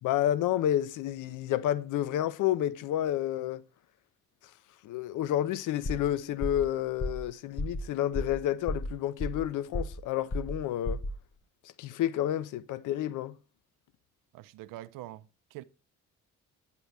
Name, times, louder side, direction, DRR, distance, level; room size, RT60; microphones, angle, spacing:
voice 1, 0.0-3.6 4.8-11.0 11.8-13.4, left 12 dB, 45° left, 0.6 m, -30 dB
sound 1, 5.9-6.1 6.4-6.7 7.0-7.3 7.6-7.8 8.1-8.4 8.7-9.5 9.7-10.0 10.3-10.6 10.9-11.2, left 1 dB, 20° left, 1.0 m, -33 dB
voice 2, 14.3-15.6, right 15 dB, 50° right, 0.6 m, -45 dB
8.8 x 8.5 x 3.3 m
figure-of-eight pair, 45°, 43 cm